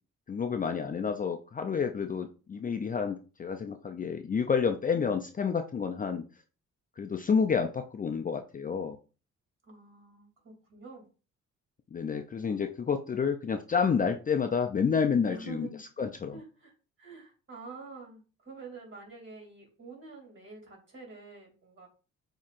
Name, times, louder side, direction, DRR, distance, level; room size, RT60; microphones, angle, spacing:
voice 1, 0.3-6.2 7.0-9.0 11.9-15.7 16.0-16.4, left 6 dB, 30° left, 6 dB, 0.4 m, -29 dB
voice 2, 9.6-11.1 15.3-15.8 16.3-16.7 17.0-21.9, right 4 dB, 40° right, 1 dB, 2.7 m, -47 dB
7.2 x 2.9 x 2.5 m, 0.35 s
cardioid pair, 80°, 30 cm